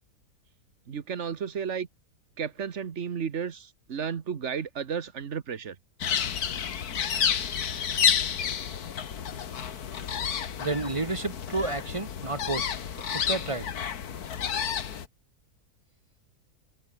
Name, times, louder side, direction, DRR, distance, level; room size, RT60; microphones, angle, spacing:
voice 1, 0.9-1.9 2.4-5.8, right 7 dB, 50° right, 1.4 m, -33 dB
sound 1, 6.0-15.1, left 8 dB, 75° left, 1.9 m, -30 dB
voice 2, 10.6-12.7 13.1-13.7, right 3 dB, 25° right, 0.8 m, -31 dB
omnidirectional pair, 1.6 m